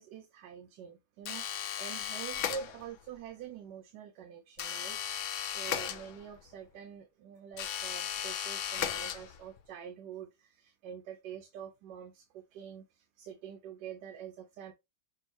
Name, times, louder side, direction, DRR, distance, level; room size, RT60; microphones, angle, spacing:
voice 1, 0.0-14.7, right 8 dB, 75° right, 1.2 m, -46 dB
sound 1, 1.3-3.1 4.6-6.5 7.5-9.6, left 9 dB, 80° left, 0.6 m, -36 dB
6.1 x 2.5 x 3.0 m
omnidirectional pair, 1.9 m